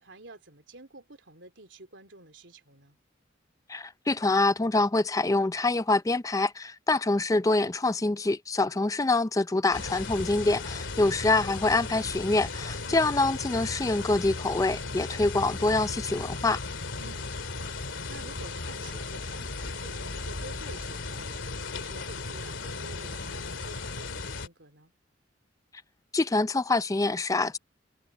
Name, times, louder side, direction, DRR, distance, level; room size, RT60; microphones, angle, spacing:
voice 1, 0.0-3.0 12.9-13.4 17.0-24.9, right 2 dB, 75° right, 3.3 m, -50 dB
voice 2, 3.7-16.6 26.1-27.6, left 2 dB, 15° left, 0.4 m, -25 dB
sound 1, 9.7-24.5, left 3 dB, 80° left, 2.5 m, -36 dB
head